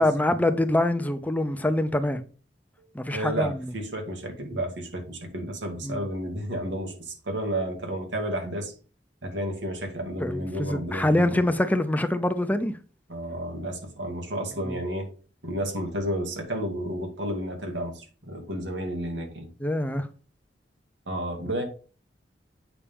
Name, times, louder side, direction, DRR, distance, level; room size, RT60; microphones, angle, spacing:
voice 1, 0.0-2.2 2.9-3.5 5.8-6.0 10.2-12.7 14.6-14.8 19.6-20.1, left 1 dB, 10° left, 0.7 m, -25 dB
voice 2, 2.8-8.7 9.2-11.5 13.1-15.1 15.4-19.5 21.1-21.6, right 1 dB, 85° right, 2.3 m, -32 dB
8.5 x 5.7 x 3.6 m
head